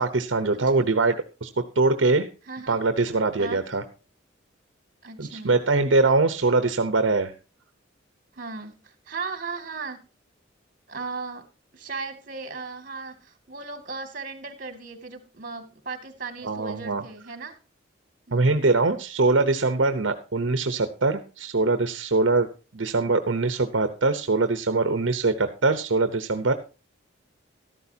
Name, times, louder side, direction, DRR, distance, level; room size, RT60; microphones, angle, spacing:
voice 1, 0.0-2.3 2.7-3.8 5.2-7.3 16.4-17.0 18.3-22.5 22.7-26.5, right 3 dB, 75° right, 10 dB, 0.9 m, -23 dB
voice 2, 2.5-2.8 3.4-3.6 5.0-5.5 8.3-10.0 10.9-11.4 11.7-17.5 18.3-18.5, right 4 dB, 45° right, 8 dB, 2.4 m, -36 dB
14.0 x 12.5 x 2.8 m, 0.32 s
head